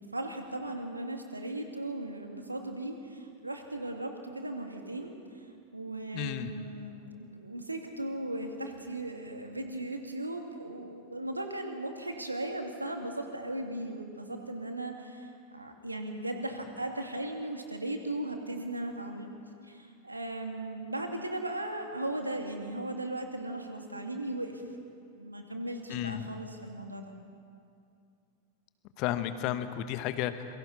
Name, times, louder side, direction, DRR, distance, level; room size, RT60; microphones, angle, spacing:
voice 1, 0.1-19.3 19.6-24.6 25.1-27.1, right 1 dB, 85° right, 4 dB, 2.3 m, -37 dB
voice 2, 6.1-6.5 25.9-26.3 29.0-30.6, left 12 dB, 40° left, 11 dB, 1.3 m, -33 dB
27.0 x 23.0 x 4.1 m, 2.4 s
figure-of-eight pair, 90°, 0 cm